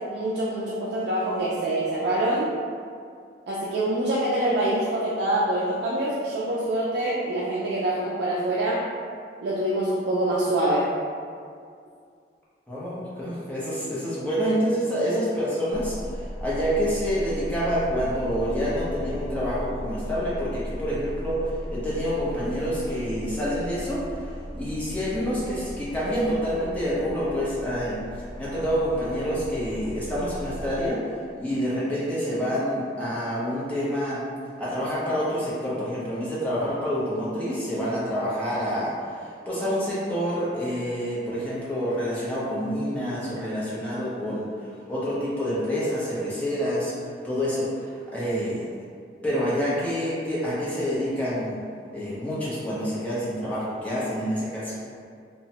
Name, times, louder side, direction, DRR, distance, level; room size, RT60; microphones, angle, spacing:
voice 1, 0.1-2.5 3.5-8.9 9.4-10.9, right 1 dB, 75° right, -6 dB, 0.4 m, -25 dB
voice 2, 12.7-28.0 28.4-31.0 31.4-34.2 34.6-44.5 44.9-46.9 47.2-48.6 49.2-51.6 51.9-54.8, equal, 10° left, -9 dB, 0.6 m, -27 dB
sound 1, 15.7-30.9, equal, 45° left, 1.1 m, -36 dB
2.9 x 2.1 x 2.8 m, 2.2 s
head